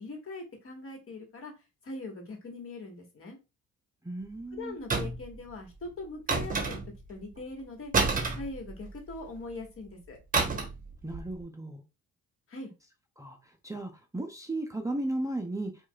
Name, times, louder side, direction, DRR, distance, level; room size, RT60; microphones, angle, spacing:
voice 1, 0.0-1.5 1.8-3.4 4.5-6.8 7.1-7.9 8.4-10.2 12.5-12.7, left 2 dB, 45° left, 1.4 m, -41 dB
voice 2, 4.0-4.8 11.0-11.8 13.2-13.4 13.6-15.7, right 1 dB, 10° right, 0.5 m, -35 dB
sound 1, 4.9-5.3 6.3-7.1 7.9-9.1 10.3-10.8 11.1-11.3, right 4 dB, 30° right, 0.9 m, -29 dB
4.6 x 2.4 x 2.3 m
cardioid pair, 90°, 30 cm